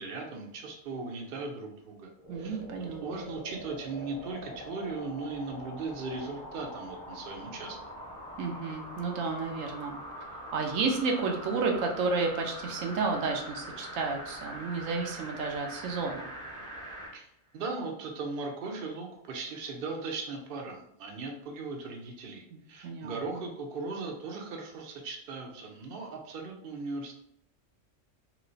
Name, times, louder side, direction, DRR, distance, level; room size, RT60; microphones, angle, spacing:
voice 1, 0.0-2.1 2.4-2.6 3.0-7.8 17.1-27.1, right 3 dB, 55° right, 2 dB, 0.7 m, -38 dB
sound 1, 2.2-17.2 17.6-17.7, equal, 5° left, 0.6 m, -43 dB
voice 2, 2.3-3.2 8.4-10.0 10.5-16.3 22.5-23.4, right 4 dB, 80° right, 2 dB, 1.0 m, -32 dB
3.1 x 2.8 x 2.6 m, 0.72 s
omnidirectional pair, 1.3 m